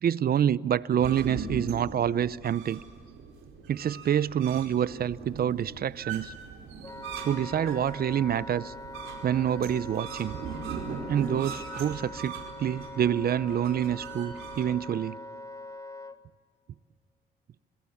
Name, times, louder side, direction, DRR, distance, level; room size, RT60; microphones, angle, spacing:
voice 1, 0.0-2.8 3.7-6.3 7.2-8.7 9.2-10.4 11.1-15.2, right 9 dB, 50° right, 0.6 m, -27 dB
sound 1, 1.0-14.7, right 5 dB, 80° right, 4.8 m, -40 dB
Wind instrument woodwind instrument, 6.8-16.2, left 1 dB, 15° left, 1.4 m, -43 dB
26.5 x 23.0 x 7.2 m
cardioid pair, 90°, 20 cm